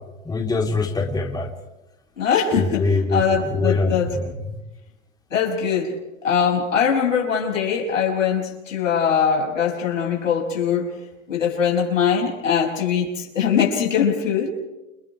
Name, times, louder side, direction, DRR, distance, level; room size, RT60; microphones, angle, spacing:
voice 1, 0.3-1.5 2.6-4.3, left 3 dB, 10° left, -1 dB, 3.6 m, -23 dB
voice 2, 2.2-4.2 5.3-6.0 6.2-10.9 11.3-14.5, left 7 dB, 90° left, -1 dB, 6.6 m, -21 dB
29.5 x 29.0 x 3.4 m, 1.0 s
hypercardioid pair, 110°, 37 cm